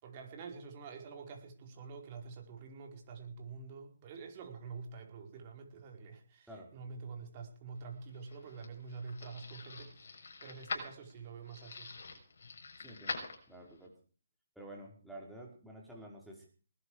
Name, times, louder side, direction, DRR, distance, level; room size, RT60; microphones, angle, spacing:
voice 1, 0.0-11.9, right 5 dB, 30° right, 3 dB, 4.9 m, -47 dB
sound 1, 7.9-13.9, left 4 dB, 65° left, 6.4 m, -45 dB
voice 2, 12.8-14.0 14.5-16.5, right 1 dB, ahead, -3 dB, 5.1 m, -50 dB
19.5 x 12.5 x 5.0 m, 0.40 s
hypercardioid pair, 155°, 0 cm